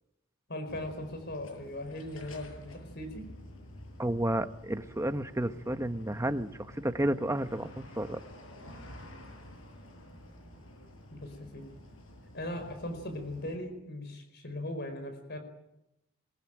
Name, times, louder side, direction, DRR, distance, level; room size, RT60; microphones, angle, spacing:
voice 1, 0.5-3.2 11.1-11.6 12.3-15.4, left 1 dB, 50° left, 8 dB, 4.8 m, -39 dB
sound 1, 0.7-13.6, left 1 dB, 70° left, 7.4 m, -50 dB
voice 2, 4.0-8.2, right 1 dB, 15° right, 9 dB, 1.1 m, -31 dB
23.5 x 22.5 x 9.0 m, 0.87 s
head